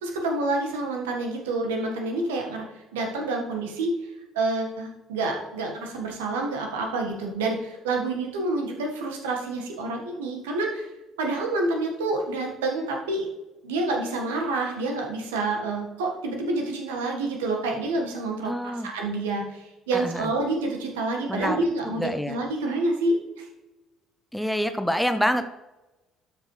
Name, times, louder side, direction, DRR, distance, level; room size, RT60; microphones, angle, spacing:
voice 1, 0.0-2.6 2.9-3.9 4.3-10.9 11.2-13.3 13.6-23.4, right 2 dB, 75° right, 1 dB, 1.6 m, -28 dB
voice 2, 18.4-18.9 19.9-20.3 21.3-22.4 24.3-25.5, equal, ahead, 9 dB, 0.7 m, -27 dB
12.0 x 6.4 x 3.3 m, 1.0 s
figure-of-eight pair, 50°, 0 cm